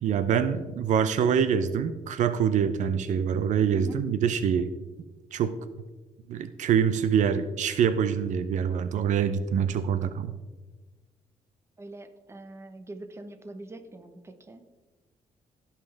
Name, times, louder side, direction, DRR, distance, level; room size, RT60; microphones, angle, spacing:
voice 1, 0.0-4.7 5.3-5.5 6.3-10.3, right 7 dB, 70° right, 12 dB, 0.5 m, -25 dB
voice 2, 3.7-4.1 11.8-14.7, right 2 dB, 20° right, 8 dB, 0.9 m, -43 dB
16.5 x 5.8 x 3.4 m, 1.2 s
cardioid pair, 130°, 13 cm